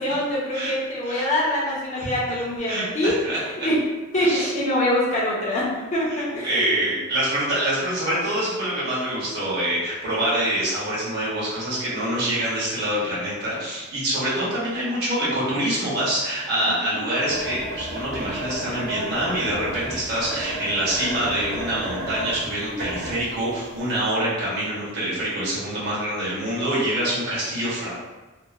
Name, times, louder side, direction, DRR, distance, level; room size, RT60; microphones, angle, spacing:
voice 1, 0.0-3.2 3.6-3.8 4.1-6.9 16.6-17.0 22.7-22.9, left 1 dB, 35° left, -5 dB, 0.6 m, -24 dB
voice 2, 2.7-3.7 4.2-4.5 6.4-28.0, right 1 dB, 55° right, -8 dB, 1.1 m, -25 dB
sound 1, 17.3-23.6 24.0-24.1, right 1 dB, 70° right, 0.6 m, -32 dB
2.8 x 2.1 x 2.4 m, 1.2 s
head